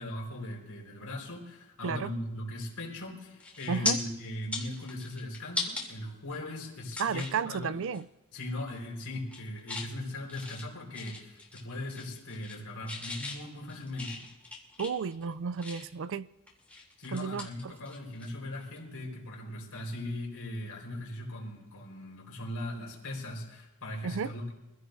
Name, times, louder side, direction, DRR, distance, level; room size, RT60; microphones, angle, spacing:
voice 1, 0.0-7.8 8.3-14.2 17.0-24.5, left 1 dB, 80° left, 4.7 m, -39 dB
sound 1, 3.4-3.9 4.4-5.8 6.3-6.4 6.9-7.4 7.8-8.0 8.3-8.8 9.1-9.9 10.3-11.6 11.9-12.6 12.9-16.0 16.5-18.3 18.6-18.8 20.6-20.8, left 3 dB, 5° left, 3.1 m, -38 dB
voice 2, 3.7-4.0 7.0-8.0 14.8-16.3 17.1-17.7 24.0-24.3, right 6 dB, 60° right, 0.4 m, -33 dB
25.5 x 16.0 x 2.7 m
head